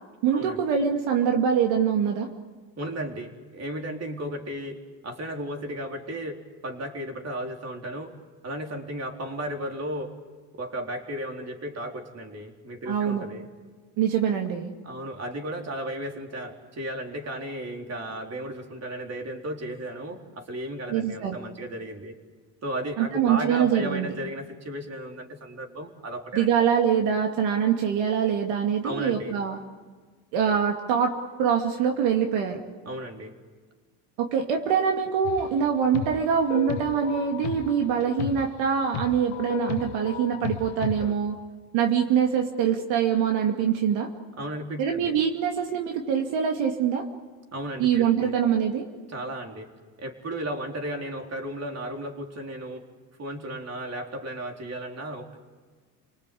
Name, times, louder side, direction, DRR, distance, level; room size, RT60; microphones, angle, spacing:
voice 1, 0.2-2.3 12.9-13.3 14.0-14.7 20.9-21.4 23.0-24.1 26.3-29.6 30.3-32.6 34.2-41.4 41.7-44.1 44.8-47.1 47.8-48.9, right 8 dB, 65° right, 3 dB, 2.5 m, -24 dB
voice 2, 2.8-8.1 8.4-10.1 10.5-13.5 14.8-22.1 22.6-26.5 28.8-29.3 32.8-33.3 44.4-45.1 47.5-48.3 49.1-49.7 50.0-52.8 53.2-55.4, right 1 dB, 30° right, 3 dB, 4.0 m, -34 dB
sound 1, 35.2-35.6 35.9-41.2, left 10 dB, 70° left, 1.5 m, -35 dB
30.0 x 19.5 x 8.6 m, 1.5 s
supercardioid pair, 95°, 48 cm